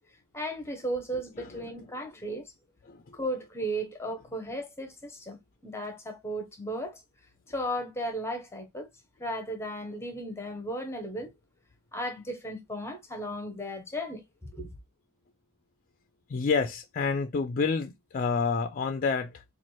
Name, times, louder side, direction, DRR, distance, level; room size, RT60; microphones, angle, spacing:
voice 1, 0.3-2.5 3.1-5.4 5.6-7.0 7.5-8.9 9.2-11.3 11.9-14.7, equal, 10° left, 0.7 m, -35 dB
voice 2, 2.8-3.2 16.3-19.4, left 5 dB, 40° left, 0.4 m, -29 dB
4.2 x 2.4 x 3.0 m
head